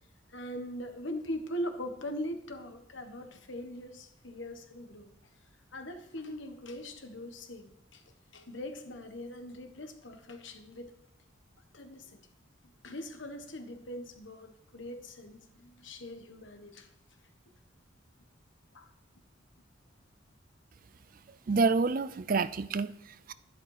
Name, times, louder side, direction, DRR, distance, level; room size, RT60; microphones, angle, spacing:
voice 1, 0.3-5.3 5.7-8.0 8.3-10.9 11.7-12.2 12.6-17.2 18.7-18.9, left 1 dB, 65° left, 7 dB, 1.5 m, -41 dB
voice 2, 21.5-23.3, right 4 dB, 40° right, 15 dB, 0.4 m, -28 dB
12.0 x 11.0 x 4.9 m, 0.78 s
head